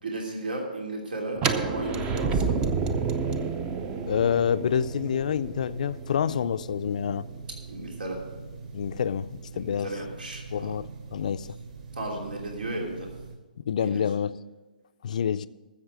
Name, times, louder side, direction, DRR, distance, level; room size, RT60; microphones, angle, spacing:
voice 1, 0.0-2.5 7.7-8.2 9.5-10.7 11.9-13.1 13.8-14.1, right 2 dB, 80° right, 0 dB, 3.0 m, -34 dB
sound 1, 1.4-7.2, right 5 dB, 15° right, 0.5 m, -30 dB
sound 2, 2.1-13.3, right 4 dB, 50° right, 3.4 m, -42 dB
voice 2, 4.1-7.3 8.7-9.9 10.5-11.5 13.7-14.4 15.0-15.5, left 8 dB, 55° left, 13 dB, 0.4 m, -27 dB
13.5 x 7.2 x 6.2 m, 1.2 s
hypercardioid pair, 160°, 5 cm